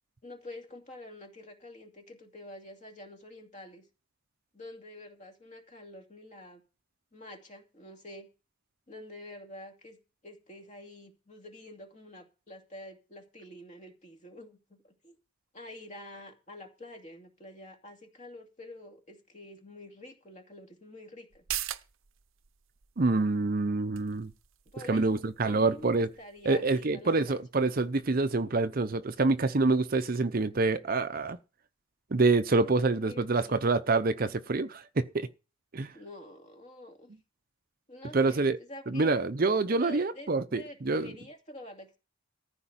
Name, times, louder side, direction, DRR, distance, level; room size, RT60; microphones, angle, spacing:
voice 1, 0.2-3.8 4.5-6.6 7.1-8.3 8.9-10.0 10.2-15.1 15.5-21.4 24.7-27.4 32.5-33.6 35.9-37.1 37.9-39.2 39.7-42.0, left 1 dB, 35° left, 2.5 m, -47 dB
sound 1, 21.3-28.4 28.8-28.9, right 12 dB, 80° right, 0.8 m, -44 dB
voice 2, 23.0-24.3 24.9-26.1 26.5-31.4 32.1-35.3 35.7-35.9 38.1-38.6 38.9-41.1, right 3 dB, 45° right, 0.7 m, -26 dB
14.5 x 5.1 x 8.8 m
head